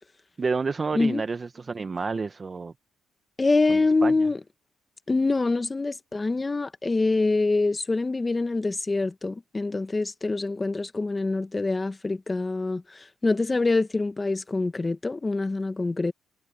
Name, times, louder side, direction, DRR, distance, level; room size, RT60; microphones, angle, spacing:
voice 1, 0.4-2.7 3.7-4.1, right 4 dB, 35° right, 1.0 m, -29 dB
voice 2, 3.4-4.4 5.1-16.1, left 3 dB, 20° left, 1.3 m, -25 dB
cardioid pair, 90°, 0 cm